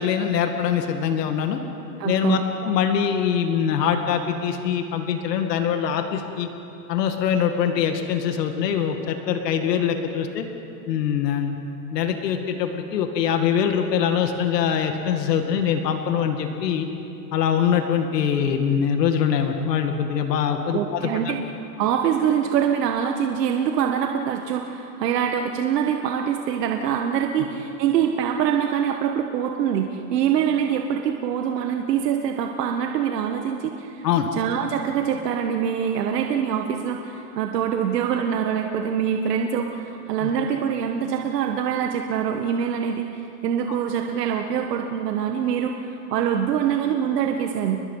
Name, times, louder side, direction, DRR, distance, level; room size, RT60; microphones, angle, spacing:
voice 1, 0.0-1.6 2.0-6.5 6.9-10.4 10.9-11.6 11.9-16.9 17.3-21.1 34.0-34.3 40.2-40.3 43.7-43.8, left 8 dB, 80° left, 5 dB, 2.2 m, -23 dB
voice 2, 2.0-2.4 20.7-21.4 21.8-34.0 34.3-47.8, right 8 dB, 75° right, 3 dB, 1.7 m, -24 dB
30.0 x 21.5 x 5.7 m, 2.9 s
supercardioid pair, 175°, 48 cm